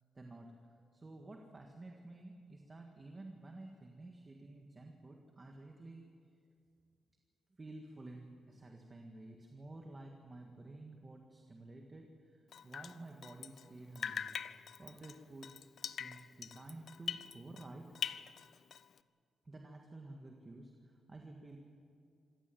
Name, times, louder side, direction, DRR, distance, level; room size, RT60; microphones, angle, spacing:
voice 1, 0.1-6.1 7.6-14.3 14.8-17.9 19.5-21.6, right 2 dB, 20° right, 2 dB, 1.8 m, -52 dB
Drip, 12.5-13.7 13.9-17.7 17.9-19.0, left 8 dB, 60° left, 0.6 m, -43 dB
26.5 x 16.0 x 9.4 m, 2.4 s
wide cardioid pair, 160°, 0 cm